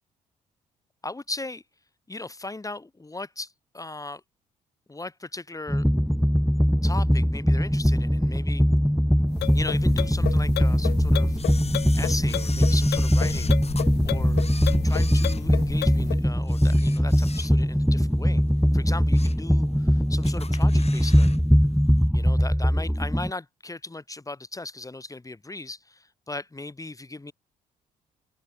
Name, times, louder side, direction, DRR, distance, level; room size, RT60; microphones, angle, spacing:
voice 1, 1.0-1.6 2.1-4.2 4.9-5.8 6.8-8.7 9.5-14.4 14.8-18.4 18.7-21.4 22.1-27.3, left 2 dB, 20° left, 2.3 m, -38 dB
sound 1, 5.7-23.3, equal, ahead, 1.3 m, -21 dB
sound 2, 9.3-16.2, left 15 dB, 70° left, 1.5 m, -33 dB
Camera, 11.4-13.9 14.3-16.0 16.4-17.8 18.2-18.3 18.9-19.5 19.8-19.9 20.2-21.4 21.6-21.7, left 4 dB, 35° left, 7.4 m, -41 dB
open air
hypercardioid pair, 55°, 18 cm